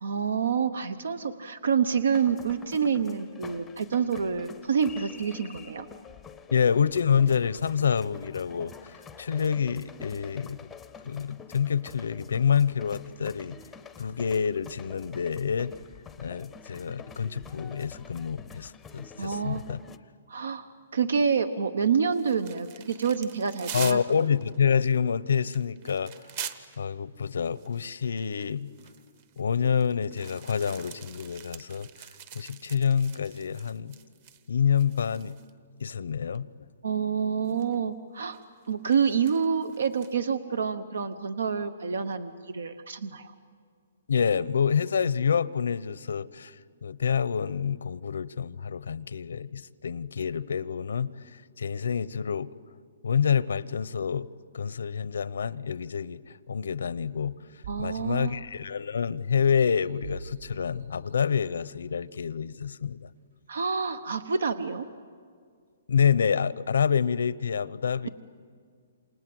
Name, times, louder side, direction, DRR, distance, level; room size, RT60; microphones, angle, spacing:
voice 1, 0.0-5.9 19.2-19.6 20.3-24.3 36.8-38.4 38.7-43.3 57.7-58.4 63.5-64.9, right 6 dB, 90° right, 12 dB, 1.0 m, -28 dB
sound 1, 2.1-20.0, left 5 dB, 5° left, 0.6 m, -48 dB
voice 2, 6.5-10.6 11.0-13.6 14.0-15.7 16.2-19.8 23.7-26.3 26.8-28.7 29.4-32.1 32.3-34.0 34.5-35.4 35.8-36.5 44.1-52.5 53.0-54.3 54.5-63.1 65.9-68.1, left 7 dB, 85° left, 18 dB, 0.8 m, -27 dB
sound 2, 22.1-26.8 27.4-34.5 34.8-35.5 36.3-36.4 37.4-37.8 38.3-40.1, right 9 dB, 30° right, 0.9 m, -44 dB
sound 3, 57.6-58.9 59.4-61.6 62.1-62.2, right 5 dB, 65° right, 4.3 m, -45 dB
28.5 x 27.0 x 7.8 m, 2.1 s
hypercardioid pair, 175°, 0 cm